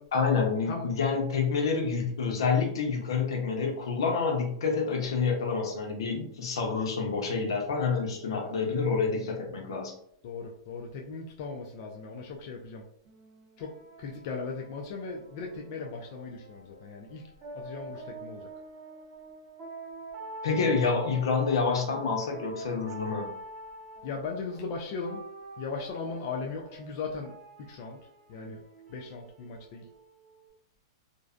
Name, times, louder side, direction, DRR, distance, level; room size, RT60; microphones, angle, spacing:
voice 1, 0.1-9.9 20.4-23.3, left 5 dB, 80° left, 2 dB, 0.7 m, -28 dB
voice 2, 10.2-12.8 13.6-17.2 17.5-18.5 24.0-25.2 25.6-27.3 27.6-28.0 28.3-28.6 28.9-29.9, left 4 dB, 45° left, 0 dB, 0.4 m, -38 dB
sound 1, 13.0-30.5, right 2 dB, 25° right, 0.8 m, -46 dB
2.5 x 2.1 x 2.4 m, 0.68 s
hypercardioid pair, 155°, 3 cm